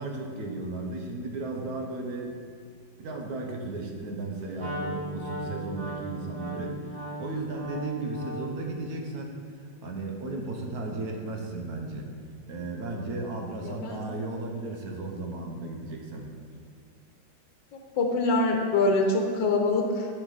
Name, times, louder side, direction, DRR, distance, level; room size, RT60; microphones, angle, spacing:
voice 1, 0.0-2.3 3.0-12.1 12.5-16.3, right 2 dB, 60° right, 1 dB, 1.3 m, -35 dB
Wind instrument woodwind instrument, 4.6-8.6, right 1 dB, 25° right, 2.3 m, -36 dB
voice 2, 13.6-14.0 17.7-20.1, left 2 dB, 80° left, 2 dB, 1.6 m, -25 dB
12.5 x 5.1 x 4.0 m, 2.1 s
omnidirectional pair, 2.0 m